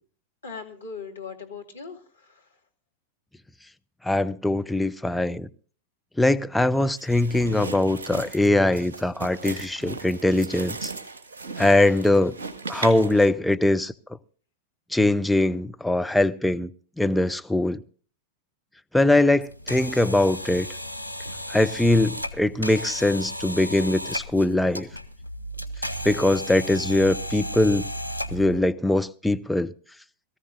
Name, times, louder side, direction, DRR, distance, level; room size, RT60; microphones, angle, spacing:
voice 1, 0.4-2.5, left 5 dB, 75° left, 2.2 m, -39 dB
voice 2, 4.1-5.5 6.2-10.9 11.6-12.3 12.7-13.9 14.9-16.7 17.0-17.8 18.9-20.7 21.5-24.9 26.0-27.8 28.3-29.7, left 1 dB, 5° left, 0.6 m, -22 dB
sound 1, 6.9-13.3, right 4 dB, 65° right, 1.5 m, -37 dB
sound 2, 19.4-28.6, equal, 85° right, 1.1 m, -34 dB
22.0 x 14.0 x 2.5 m
figure-of-eight pair, 90°, 0 cm